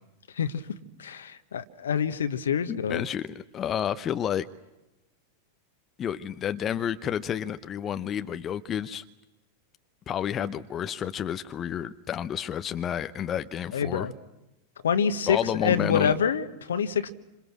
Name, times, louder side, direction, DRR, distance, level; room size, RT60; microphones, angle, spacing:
voice 1, 0.3-3.0 13.7-14.1 14.8-17.1, left 7 dB, 65° left, 1.4 m, -27 dB
voice 2, 2.7-4.5 6.0-9.0 10.1-14.1 15.3-16.1, left 9 dB, 25° left, 0.8 m, -30 dB
28.5 x 27.0 x 6.1 m
figure-of-eight pair, 90°, 0 cm